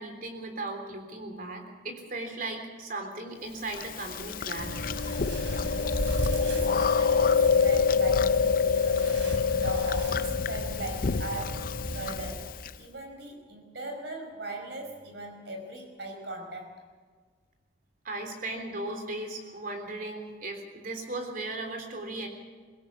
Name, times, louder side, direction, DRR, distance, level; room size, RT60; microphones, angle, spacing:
voice 1, 0.0-4.7 18.0-22.3, right 2 dB, 45° right, 5 dB, 3.5 m, -37 dB
Chewing mastication, 3.7-12.7, left 6 dB, 50° left, 0.5 m, -26 dB
sound 1, 4.6-12.3, equal, 80° right, 4.2 m, -35 dB
voice 2, 5.5-9.1 9.6-12.5 12.7-16.8, right 2 dB, 65° right, 4 dB, 5.2 m, -40 dB
22.5 x 17.0 x 7.3 m, 1.5 s
head